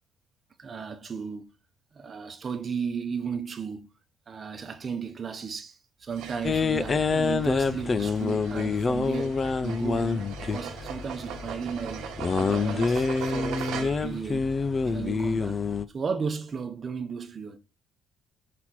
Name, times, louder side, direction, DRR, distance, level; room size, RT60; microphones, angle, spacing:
voice 1, 0.6-1.5 1.9-3.9 4.3-12.1 12.4-14.5 14.8-15.6 15.9-17.6, right 6 dB, 25° right, 0.9 m, -35 dB
sound 1, 6.1-14.2, right 8 dB, 75° right, 1.1 m, -40 dB
sound 2, 6.4-15.9, left 4 dB, 20° left, 0.3 m, -27 dB
5.9 x 4.1 x 4.4 m
cardioid pair, 170°, 0 cm